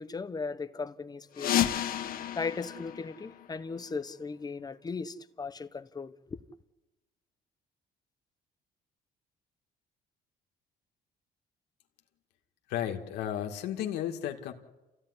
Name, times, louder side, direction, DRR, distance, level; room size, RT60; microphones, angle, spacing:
voice 1, 0.0-1.7 2.4-6.4, left 4 dB, 25° left, 1.2 m, -37 dB
sound 1, 1.3-4.0, left 11 dB, 60° left, 1.4 m, -32 dB
voice 2, 12.7-14.5, left 10 dB, 90° left, 2.3 m, -33 dB
28.0 x 15.5 x 9.9 m
cardioid pair, 110°, 17 cm